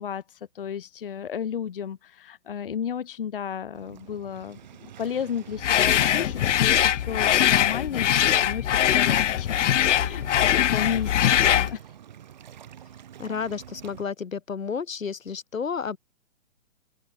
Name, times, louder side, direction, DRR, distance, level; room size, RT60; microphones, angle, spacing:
voice 1, 0.0-9.6 9.9-11.8, left 8 dB, 45° left, 1.0 m, -33 dB
Waves surf, 3.7-14.0, right 10 dB, 35° right, 2.0 m, -46 dB
sound 1, 5.6-11.7, left 11 dB, 65° left, 0.5 m, -21 dB
voice 2, 13.2-16.0, left 6 dB, 80° left, 4.7 m, -31 dB
open air
hypercardioid pair, 170°, 39 cm